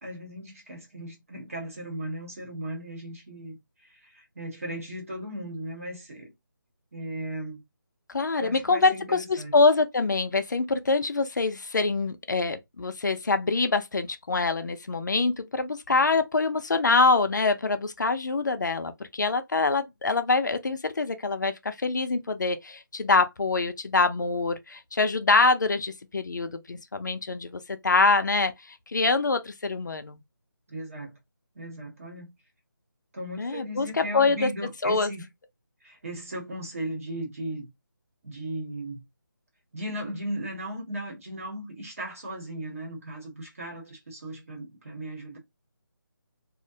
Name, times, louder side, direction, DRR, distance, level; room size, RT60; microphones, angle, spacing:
voice 1, 0.0-6.3 6.9-7.6 8.4-9.6 30.7-31.1 31.5-32.3 33.1-35.2 35.8-37.7 38.2-39.0 39.7-45.4, right 1 dB, 40° right, 0.9 m, -37 dB
voice 2, 8.1-30.2 33.4-34.5 34.8-35.1, left 3 dB, 55° left, 0.4 m, -25 dB
2.4 x 2.1 x 2.6 m
figure-of-eight pair, 175°, 12 cm